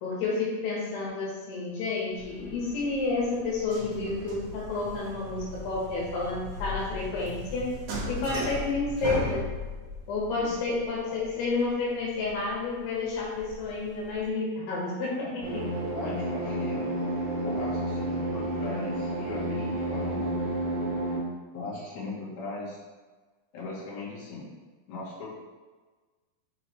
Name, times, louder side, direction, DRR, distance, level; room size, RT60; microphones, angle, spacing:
voice 1, 0.0-7.7 8.1-9.4 10.1-15.6, left 3 dB, 85° left, -4 dB, 3.4 m, -30 dB
sound 1, 2.1-14.3, left 1 dB, 75° right, 1.5 m, -38 dB
sound 2, 15.4-21.2, right 1 dB, 50° right, 1.9 m, -30 dB
voice 2, 15.9-16.9 17.4-20.4 21.5-22.8 23.5-24.4 24.9-25.3, left 2 dB, 55° left, -8 dB, 2.7 m, -38 dB
6.7 x 4.8 x 3.2 m, 1.3 s
omnidirectional pair, 4.6 m